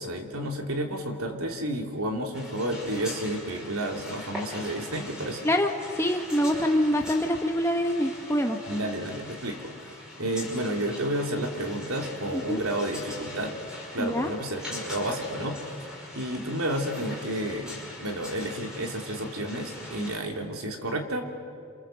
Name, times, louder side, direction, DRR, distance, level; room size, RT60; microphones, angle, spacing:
voice 1, 0.0-5.4 8.7-9.6 10.2-13.5 13.9-15.6 16.1-21.2, right 1 dB, 80° right, 3 dB, 3.2 m, -31 dB
pinwheel sounds, 2.3-20.2, left 2 dB, 5° right, 5.4 m, -42 dB
voice 2, 5.4-8.6 12.3-12.6 14.0-14.3, equal, 10° left, 3 dB, 1.1 m, -25 dB
28.0 x 26.5 x 7.8 m, 2.3 s
head